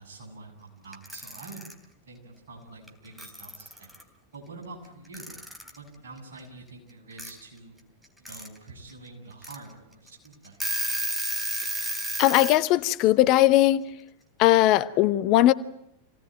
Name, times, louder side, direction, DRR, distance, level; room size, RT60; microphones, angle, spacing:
voice 1, 0.0-1.6 2.1-3.9 4.3-7.8 8.2-10.7, right 3 dB, 65° right, 7.8 m, -46 dB
Alarm / Clock, 0.9-1.7 2.9-3.0 3.2-4.0 5.1-5.8 7.2-7.3 8.0-8.5 8.9-9.0 9.4-9.5 10.1-10.2 10.4-12.6, right 1 dB, 5° right, 3.2 m, -31 dB
voice 2, 12.2-13.9 14.4-15.5, left 15 dB, 40° left, 0.8 m, -19 dB
27.0 x 18.0 x 9.2 m
figure-of-eight pair, 90°, 0 cm